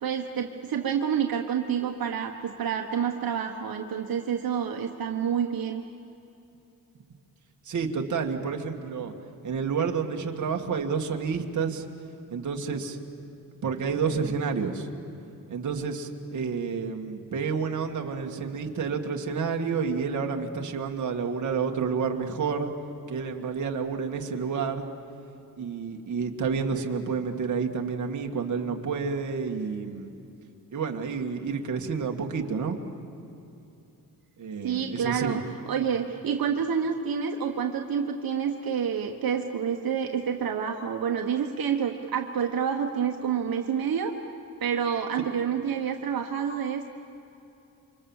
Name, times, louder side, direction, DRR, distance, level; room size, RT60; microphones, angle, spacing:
voice 1, 0.0-5.8 34.6-44.1 44.6-46.9, right 7 dB, 75° right, 3 dB, 1.4 m, -28 dB
voice 2, 7.7-9.1 9.4-11.9 12.3-13.0 13.6-14.9 15.5-22.7 23.1-24.9 25.6-30.1 30.7-32.8 34.4-35.4, right 5 dB, 55° right, 2 dB, 1.9 m, -29 dB
28.0 x 25.5 x 7.3 m, 2.8 s
wide cardioid pair, 170°, 35 cm